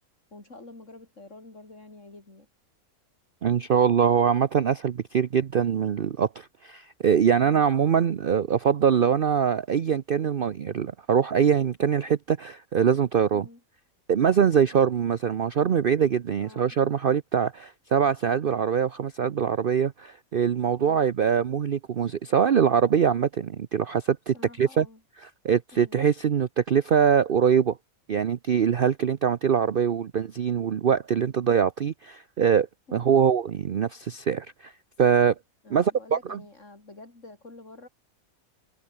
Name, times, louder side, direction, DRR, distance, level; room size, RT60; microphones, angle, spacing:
voice 1, 0.3-2.5 7.4-7.7 13.3-13.6 16.4-16.8 20.8-21.0 24.3-25.0 25.7-26.0 32.9-33.1 35.6-37.9, left 2 dB, 55° left, 5.3 m, -48 dB
voice 2, 3.4-13.4 14.1-24.9 25.4-27.8 28.1-34.7 35.0-35.3 35.7-36.4, right 7 dB, 50° right, 0.8 m, -23 dB
omnidirectional pair, 1.5 m